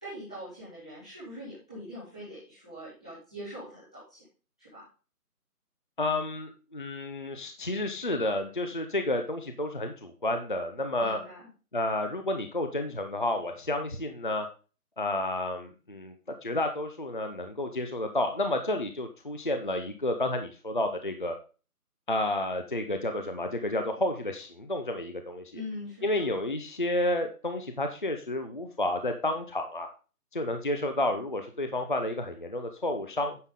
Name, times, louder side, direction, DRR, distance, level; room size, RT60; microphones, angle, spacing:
voice 1, 0.0-4.2 4.6-4.9 11.0-11.5 25.5-26.3, left 1 dB, 5° left, -12 dB, 1.0 m, -43 dB
voice 2, 6.0-11.2 11.7-14.5 15.0-16.1 16.4-21.3 22.1-25.6 26.0-29.9 30.3-33.4, left 1 dB, 35° left, 6 dB, 0.7 m, -30 dB
9.6 x 6.4 x 3.7 m, 0.35 s
figure-of-eight pair, 170°, 46 cm